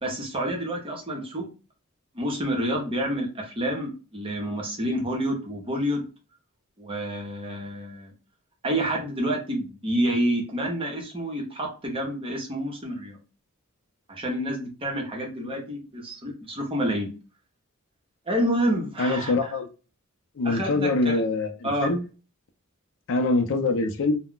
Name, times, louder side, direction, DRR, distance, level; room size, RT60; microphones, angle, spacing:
voice 1, 0.0-1.5 2.1-6.1 6.8-8.1 8.6-13.2 14.1-17.1 18.3-19.5 20.4-21.2 21.6-21.9, right 1 dB, 25° right, 0.8 m, -28 dB
voice 2, 19.0-19.7 20.4-22.0 23.1-24.2, left 3 dB, 65° left, 0.5 m, -24 dB
2.3 x 2.1 x 3.7 m
head